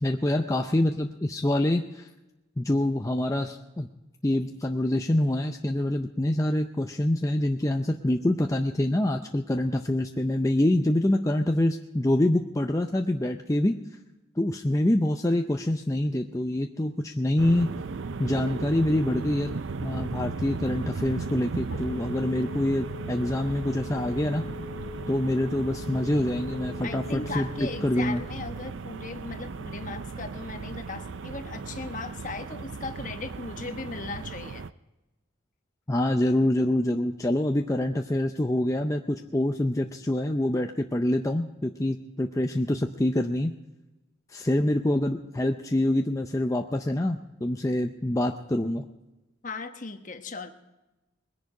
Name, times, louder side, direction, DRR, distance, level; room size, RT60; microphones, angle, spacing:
voice 1, 0.0-2.1 2.6-3.9 4.2-13.8 14.4-17.7 18.2-19.5 19.8-24.4 25.1-27.5 27.8-28.2 35.9-43.5 44.3-48.9, left 1 dB, 15° left, 4 dB, 0.5 m, -26 dB
sound 1, 17.4-34.7, right 4 dB, 70° right, 0.5 m, -36 dB
Telephone, 21.1-28.5, left 7 dB, 85° left, 1.5 m, -43 dB
voice 2, 26.8-34.6 49.4-50.5, left 3 dB, 40° left, 7 dB, 1.1 m, -37 dB
21.0 x 10.5 x 4.8 m, 1.0 s
head